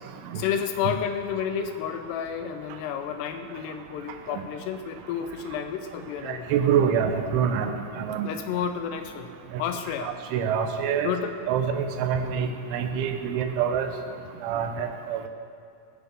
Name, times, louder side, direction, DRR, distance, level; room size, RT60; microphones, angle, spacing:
voice 1, 0.4-6.5 8.2-9.3 9.6-10.1 11.0-11.4, left 8 dB, 80° left, 8 dB, 2.5 m, -31 dB
voice 2, 6.2-8.3 9.5-9.6 10.0-11.1 11.5-13.9 14.4-15.3, right 7 dB, 85° right, 6 dB, 3.3 m, -26 dB
18.5 x 10.0 x 3.7 m, 2.4 s
omnidirectional pair, 5.4 m